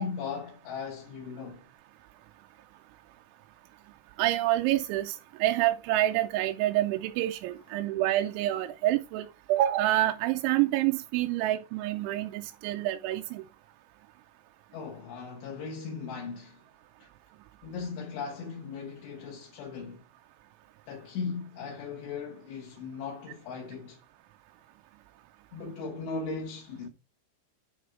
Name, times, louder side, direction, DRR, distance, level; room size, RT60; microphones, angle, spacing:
voice 1, 0.0-1.7 14.7-16.6 17.0-17.1 17.6-20.0 20.9-24.0 25.5-26.9, left 5 dB, 75° left, 3.3 m, -38 dB
voice 2, 4.2-5.1 5.4-13.4, right 14 dB, 85° right, 3.0 m, -27 dB
9.6 x 4.7 x 3.7 m
omnidirectional pair, 5.3 m